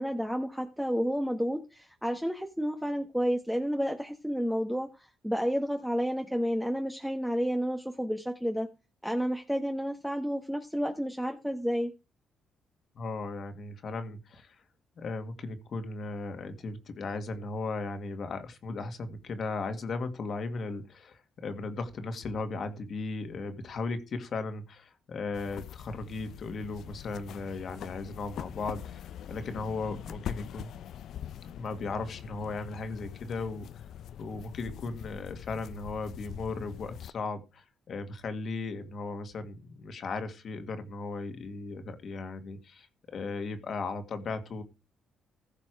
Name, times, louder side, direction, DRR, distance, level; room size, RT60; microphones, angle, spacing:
voice 1, 0.0-8.7 9.0-11.9, equal, ahead, 4 dB, 1.2 m, -31 dB
voice 2, 13.0-14.6 15.0-30.7 31.4-33.7 34.2-44.6, left 3 dB, 55° left, 9 dB, 1.9 m, -36 dB
sound 1, 25.3-37.1, left 10 dB, 70° left, 0.6 m, -43 dB
15.5 x 5.9 x 4.8 m, 0.29 s
cardioid pair, 90°, 0 cm